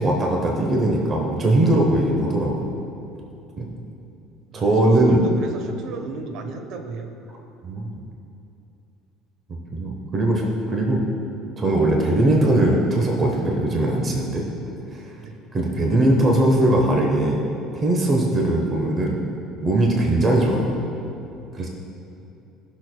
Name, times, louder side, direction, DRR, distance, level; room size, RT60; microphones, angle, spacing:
voice 1, 0.0-2.7 3.6-3.7 4.5-5.2 7.6-7.9 9.7-11.0 11.6-14.4 14.9-15.0 15.5-17.4 17.7-19.2 19.6-20.8 21.5-21.7, right 1 dB, 30° right, 0 dB, 1.0 m, -20 dB
voice 2, 4.5-7.1 15.1-15.4, right 3 dB, 60° right, 5 dB, 0.9 m, -35 dB
18.0 x 6.2 x 2.2 m, 2.8 s
cardioid pair, 130°, 0 cm